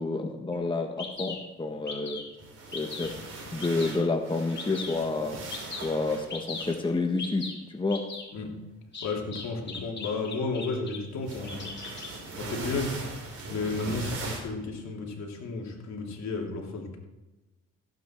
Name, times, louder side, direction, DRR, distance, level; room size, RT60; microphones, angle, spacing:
voice 1, 0.0-2.2 2.7-3.1 3.5-5.4 5.7-7.5 7.7-8.0, left 3 dB, 15° left, 3 dB, 1.3 m, -29 dB
Bird vocalization bird call bird song, 0.5-0.6 1.0-1.4 1.9-2.3 2.7-3.1 3.6-4.0 4.6-5.0 5.5-5.9 6.3-6.7 7.2-7.5 7.9-8.3 8.9-11.0 11.3-12.1, left 4 dB, 35° left, 3.7 m, -38 dB
sound 1, 2.3-7.3 9.1-9.3 11.2-14.4, right 2 dB, 50° right, 4.4 m, -40 dB
voice 2, 9.0-11.8 12.4-13.2 13.5-17.0, left 3 dB, 65° left, 0 dB, 3.1 m, -33 dB
16.0 x 9.1 x 4.5 m, 1.1 s
cardioid pair, 90°, 30 cm